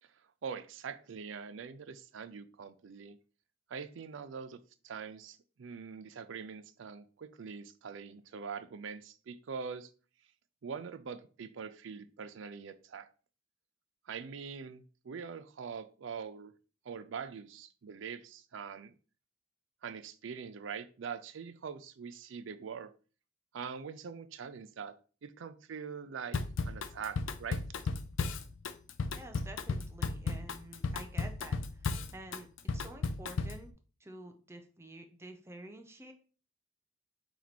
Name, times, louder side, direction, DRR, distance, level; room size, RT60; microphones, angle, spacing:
voice 1, 0.1-3.2 3.7-9.9 10.6-13.1 14.1-16.5 16.8-18.9 19.8-22.9 23.5-25.0 25.2-27.6, right 6 dB, 70° right, 12 dB, 0.4 m, -43 dB
Drum kit / Drum, 26.3-33.6, left 4 dB, 75° left, 0.4 m, -34 dB
voice 2, 29.1-32.5 32.7-33.7 34.0-36.1, right 1 dB, 15° right, 5 dB, 0.5 m, -49 dB
4.4 x 3.0 x 4.0 m, 0.38 s
head